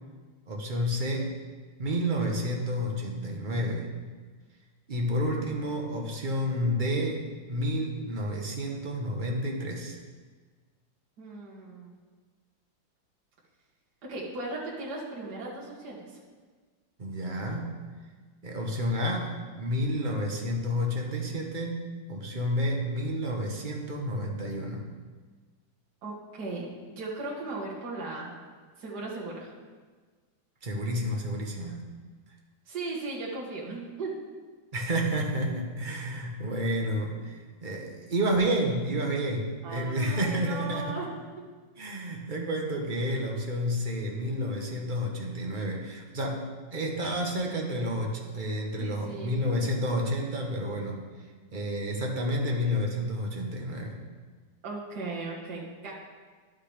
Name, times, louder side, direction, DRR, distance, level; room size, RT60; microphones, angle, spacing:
voice 1, 0.5-1.3 1.8-3.9 4.9-7.2 7.5-10.0 17.0-17.7 18.4-21.8 22.1-24.8 30.6-31.8 34.7-41.0 41.8-51.0 51.5-54.0, equal, 40° right, 0 dB, 0.7 m, -30 dB
voice 2, 11.2-11.9 14.1-16.2 26.0-28.3 28.8-29.5 32.7-34.1 39.6-41.1 48.8-49.5 54.6-55.9, right 3 dB, 60° right, -5 dB, 2.0 m, -37 dB
11.5 x 5.7 x 3.3 m, 1.4 s
omnidirectional pair, 2.1 m